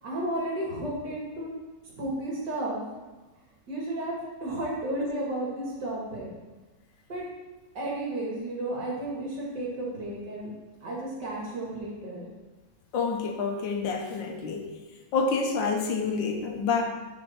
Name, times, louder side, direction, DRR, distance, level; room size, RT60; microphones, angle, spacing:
voice 1, 0.0-1.5 2.0-2.8 3.7-6.3 7.1-7.2 7.7-10.5 10.8-12.2, right 1 dB, 65° right, -4 dB, 2.7 m, -33 dB
voice 2, 12.9-14.7 15.1-16.8, left 4 dB, 85° left, 2 dB, 1.8 m, -28 dB
9.7 x 5.2 x 4.4 m, 1.2 s
omnidirectional pair, 2.0 m